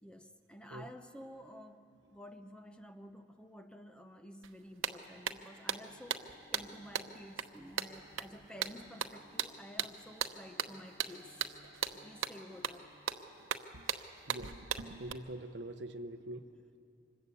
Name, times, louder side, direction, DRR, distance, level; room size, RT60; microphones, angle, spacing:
voice 1, 0.0-11.5 12.0-12.9, equal, 5° left, 7 dB, 0.8 m, -52 dB
sound 1, 4.4-4.5 4.8-15.1, right 8 dB, 85° right, 0.9 m, -38 dB
Bowed string instrument, 5.4-13.8, equal, 25° left, 2.9 m, -64 dB
voice 2, 15.0-16.5, right 1 dB, 60° right, 9 dB, 0.9 m, -44 dB
26.0 x 21.0 x 8.4 m, 2.7 s
head